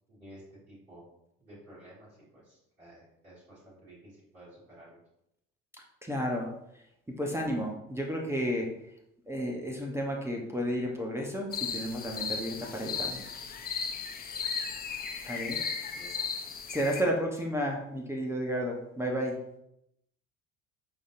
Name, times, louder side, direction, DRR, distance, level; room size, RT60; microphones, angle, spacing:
voice 1, 0.1-1.0 1.4-5.0 15.9-16.2, right 1 dB, 90° right, -11 dB, 1.8 m, -53 dB
voice 2, 6.0-6.5 7.1-8.7 9.3-13.3 15.2-15.9 16.7-19.4, equal, 5° right, -2 dB, 0.8 m, -32 dB
sound 1, 11.5-17.0, left 6 dB, 25° left, 0.5 m, -35 dB
5.2 x 3.8 x 2.6 m, 0.80 s
figure-of-eight pair, 55°, 40 cm